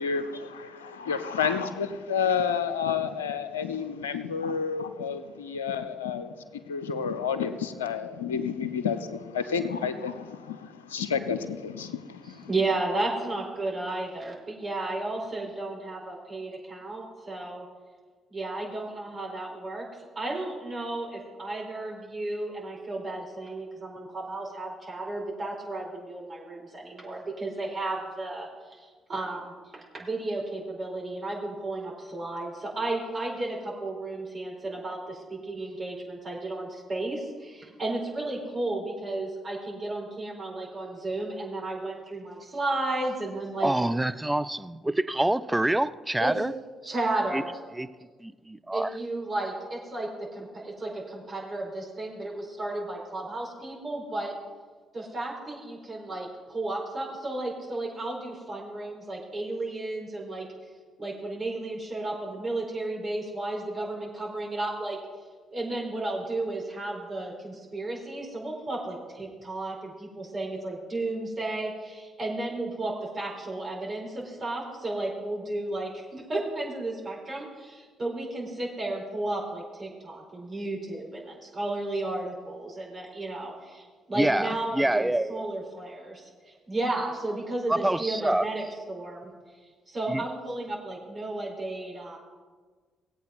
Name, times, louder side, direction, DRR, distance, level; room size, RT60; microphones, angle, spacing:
voice 1, 0.0-12.5, left 6 dB, 85° left, 12 dB, 0.6 m, -30 dB
voice 2, 12.5-17.6 18.3-19.9 20.1-43.7 46.2-46.3 46.8-47.5 48.7-54.3 54.9-60.5 61.0-65.0 65.5-88.6 88.9-89.3 89.9-92.2, right 2 dB, 40° right, -2 dB, 4.4 m, -33 dB
voice 3, 43.6-46.5 47.3-47.4 47.8-47.9 48.2-48.9 84.1-85.5 87.7-88.5 90.1-90.2, right 1 dB, 10° right, 12 dB, 0.5 m, -26 dB
18.5 x 8.4 x 4.1 m, 1.4 s
figure-of-eight pair, 45°, 0 cm